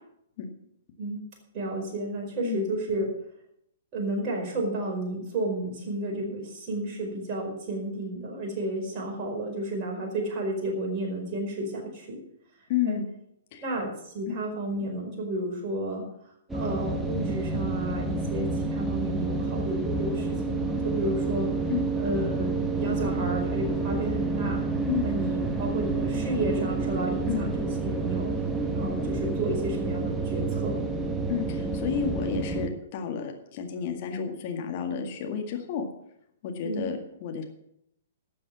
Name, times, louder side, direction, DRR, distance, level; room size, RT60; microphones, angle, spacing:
voice 1, 1.5-3.1 3.9-12.2 12.8-13.0 13.6-16.0 16.5-21.5 22.0-24.6 25.0-28.3 28.7-30.8 36.6-36.9, right 1 dB, 30° right, -1 dB, 4.8 m, -32 dB
voice 2, 12.7-13.1 13.5-13.6 14.3-14.4 21.7-21.9 24.9-25.1 27.3-27.5 31.3-35.8 36.4-37.4, left 8 dB, 40° left, 4 dB, 2.0 m, -31 dB
sound 1, 16.5-32.7, right 3 dB, 10° right, 1.3 m, -29 dB
12.5 x 7.6 x 7.2 m, 0.75 s
figure-of-eight pair, 115°, 0 cm